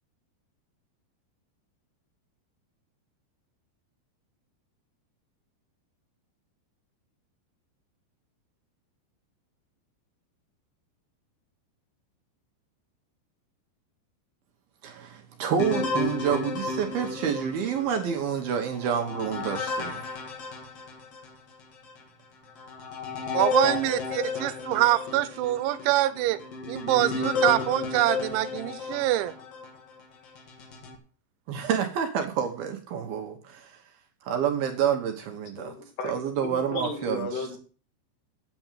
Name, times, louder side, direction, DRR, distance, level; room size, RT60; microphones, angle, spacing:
voice 1, 14.8-20.2 31.5-33.8 34.2-35.7 36.0-37.6, right 8 dB, 70° right, 5 dB, 2.6 m, -28 dB
sound 1, 15.6-21.3 21.9-22.0 22.6-29.8 30.4-31.0, left 4 dB, 50° left, 1.9 m, -33 dB
voice 2, 23.3-26.4 26.7-29.3, right 15 dB, 85° right, 13 dB, 3.1 m, -25 dB
voice 3, 35.6-36.1 36.4-37.6, left 3 dB, 65° left, 4 dB, 4.0 m, -35 dB
9.2 x 7.8 x 7.4 m, 0.40 s
omnidirectional pair, 5.3 m